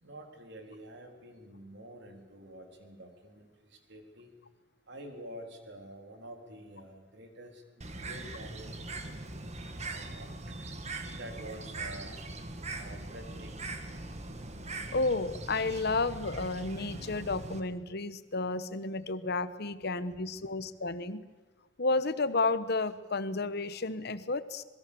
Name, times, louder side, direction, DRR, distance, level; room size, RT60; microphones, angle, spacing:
voice 1, 0.0-4.3 4.9-8.9 9.8-10.8 11.0-12.1 12.8-13.7, right 1 dB, 65° right, 4 dB, 3.8 m, -48 dB
Bird, 7.8-17.6, right 2 dB, 35° right, 1.9 m, -41 dB
voice 2, 14.9-21.2 21.8-24.6, left 3 dB, 60° left, 13 dB, 1.1 m, -32 dB
26.0 x 20.5 x 7.0 m, 1.2 s
head